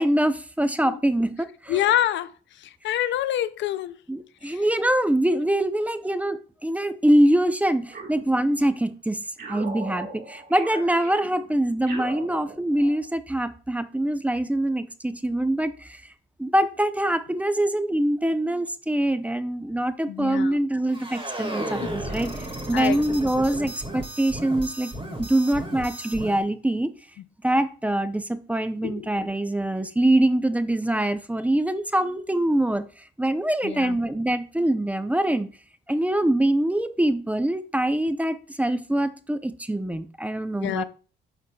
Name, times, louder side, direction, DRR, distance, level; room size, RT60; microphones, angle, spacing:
voice 1, 0.0-1.8 4.1-16.0 16.4-22.3 22.7-24.9 25.2-26.9 27.4-32.9 33.2-35.5 35.9-40.8, right 1 dB, 5° right, 0.5 m, -24 dB
voice 2, 1.7-2.3 2.8-4.0 4.5-4.6 20.1-20.6 22.7-23.0 28.8-29.1 33.6-34.0 40.6-40.8, left 12 dB, 70° left, 0.4 m, -26 dB
sound 1, 7.9-8.9 9.4-13.0, right 3 dB, 50° right, 1.6 m, -39 dB
sound 2, 20.9-26.4, right 1 dB, 25° right, 1.8 m, -34 dB
11.0 x 4.1 x 2.3 m
cardioid pair, 90°, 20 cm